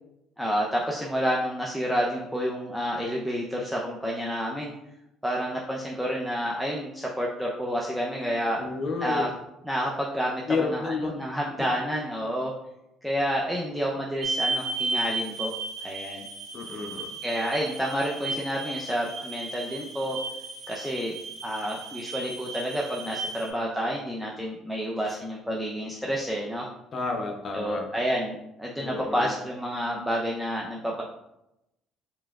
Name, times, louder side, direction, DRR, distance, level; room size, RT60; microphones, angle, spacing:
voice 1, 0.4-4.7 5.2-8.6 9.0-9.3 9.7-12.5 13.0-15.5 15.8-16.3 17.2-20.2 20.7-21.2 21.4-26.7 27.5-31.0, equal, 5° right, -2 dB, 0.6 m, -29 dB
voice 2, 8.6-9.3 10.5-11.2 11.6-11.7 16.5-17.1 25.0-25.2 26.9-27.9 28.8-29.3, left 4 dB, 50° left, 3 dB, 0.6 m, -31 dB
sound 1, 14.2-23.5, right 3 dB, 65° right, 0.9 m, -34 dB
4.8 x 3.4 x 2.4 m, 0.88 s
supercardioid pair, 75°, 0 cm